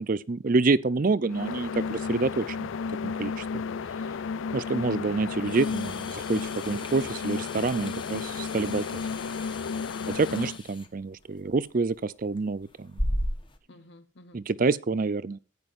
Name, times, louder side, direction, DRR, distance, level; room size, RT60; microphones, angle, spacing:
voice 1, 0.0-2.7 3.0-3.5 4.5-8.9 10.1-13.0 14.3-15.4, right 3 dB, 45° right, 0.5 m, -27 dB
sound 1, 1.3-10.6, left 5 dB, 80° left, 0.4 m, -33 dB
sound 2, 5.4-13.6, left 1 dB, 25° left, 1.1 m, -37 dB
voice 2, 13.7-14.4, left 1 dB, 60° left, 1.1 m, -53 dB
15.0 x 9.6 x 2.5 m
head